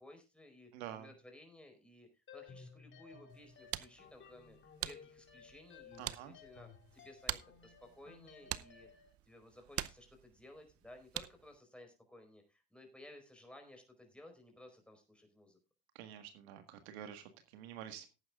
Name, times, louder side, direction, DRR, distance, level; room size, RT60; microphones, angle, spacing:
voice 1, 0.0-8.9 9.2-15.6, left 1 dB, 5° left, 4 dB, 4.5 m, -57 dB
voice 2, 0.7-1.1 6.0-6.3 15.9-18.1, right 10 dB, 85° right, 8 dB, 1.7 m, -48 dB
sound 1, 2.3-9.1, left 6 dB, 40° left, 2.5 m, -57 dB
sound 2, 3.3-11.6, right 13 dB, 50° right, 0.7 m, -46 dB
18.5 x 9.0 x 2.4 m, 0.29 s
supercardioid pair, 90°, 31 cm